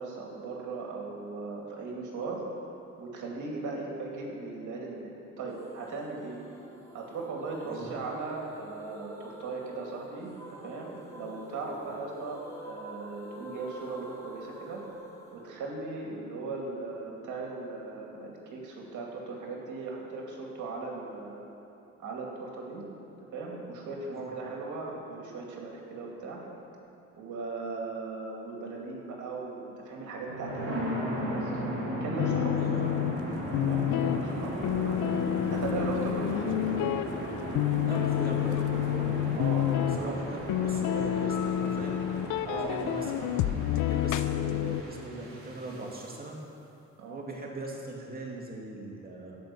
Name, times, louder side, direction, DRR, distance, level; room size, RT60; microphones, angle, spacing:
voice 1, 0.0-2.4 3.0-6.4 6.9-14.8 15.3-21.4 22.0-22.8 23.3-26.4 27.2-33.0 33.6-35.0 35.5-36.6 39.4-39.7 40.0-40.1 42.5-42.7 47.0-47.3, right 3 dB, 75° right, -1 dB, 2.5 m, -38 dB
sound 1, 5.6-16.5, right 1 dB, 10° left, 2.1 m, -48 dB
sound 2, 30.1-46.1, equal, 45° right, 2.8 m, -36 dB
sound 3, 32.2-44.8, left 12 dB, 80° left, 0.5 m, -29 dB
voice 2, 32.5-32.9 37.8-42.0 42.5-46.4 47.1-49.4, right 2 dB, 30° right, -2 dB, 2.5 m, -40 dB
16.0 x 5.3 x 7.0 m, 2.9 s
cardioid pair, 90°, 30 cm